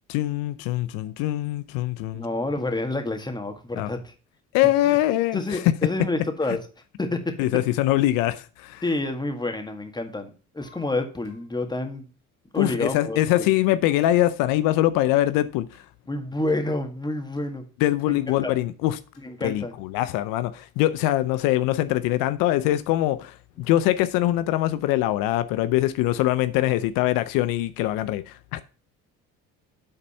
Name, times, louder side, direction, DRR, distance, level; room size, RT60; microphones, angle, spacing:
voice 1, 0.1-2.3 3.8-3.9 4.5-5.6 7.4-8.8 12.6-15.7 17.8-19.0 19.4-28.6, left 14 dB, 80° left, 0.6 m, -23 dB
voice 2, 2.1-4.1 4.8-4.9 5.3-6.6 7.0-7.3 8.8-12.0 12.5-13.2 16.1-17.6 18.1-18.5 19.2-19.7, left 2 dB, 15° left, 1.8 m, -29 dB
sound 1, 10.6-11.5 12.5-13.3 13.9-14.1 14.9-15.2 15.7-15.9 16.5-16.6 17.4-17.5 18.0-18.6 19.1-19.3, left 3 dB, 50° left, 2.9 m, -56 dB
8.8 x 4.1 x 5.5 m
supercardioid pair, 75°, 33 cm